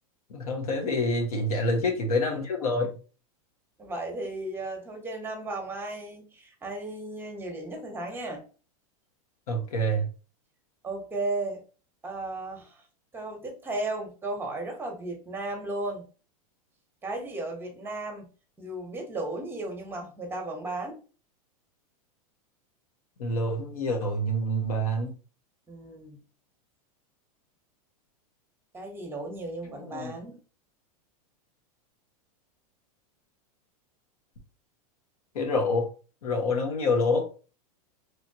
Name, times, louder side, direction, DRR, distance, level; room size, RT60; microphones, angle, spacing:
voice 1, 0.3-3.0 9.5-10.1 23.2-25.1 29.7-30.1 35.3-35.9 36.2-37.3, left 1 dB, 80° left, 2 dB, 1.2 m, -27 dB
voice 2, 3.8-8.4 10.8-11.6 12.0-12.8 13.1-16.0 17.0-18.3 18.6-21.0 25.7-26.2 28.7-30.4, right 2 dB, 10° right, 2 dB, 1.0 m, -35 dB
3.3 x 2.9 x 2.8 m, 0.36 s
supercardioid pair, 130°, 19 cm